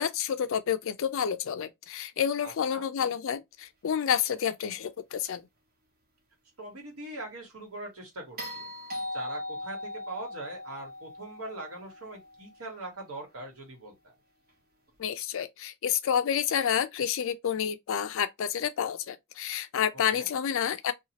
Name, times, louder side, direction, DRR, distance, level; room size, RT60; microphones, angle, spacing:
voice 1, 0.0-5.4 15.0-20.9, left 8 dB, 60° left, 0.4 m, -29 dB
voice 2, 2.4-2.8 6.6-8.7 9.1-14.1 20.1-20.3, right 2 dB, 75° right, 1.4 m, -42 dB
sound 1, 8.4-12.6 14.9-15.0, left 1 dB, 45° right, 1.1 m, -39 dB
2.7 x 2.3 x 2.8 m
head